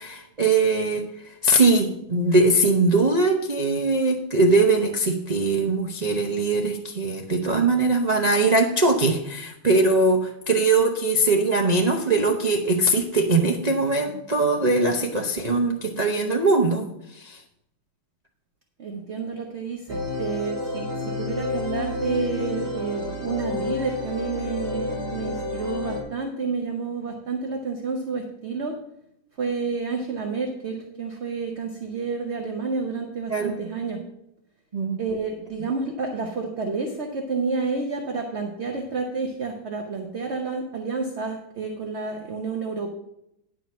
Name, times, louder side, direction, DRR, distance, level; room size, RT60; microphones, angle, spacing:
voice 1, 0.0-17.4 33.3-33.5 34.7-35.0, right 2 dB, 75° right, 0 dB, 0.3 m, -21 dB
voice 2, 18.8-28.8 29.4-34.0 35.0-42.9, right 4 dB, 50° right, 2 dB, 0.8 m, -30 dB
Calm Synthesizer A, 19.9-26.0, left 3 dB, 5° right, 3.7 m, -30 dB
10.5 x 5.0 x 6.1 m, 0.83 s
omnidirectional pair, 2.2 m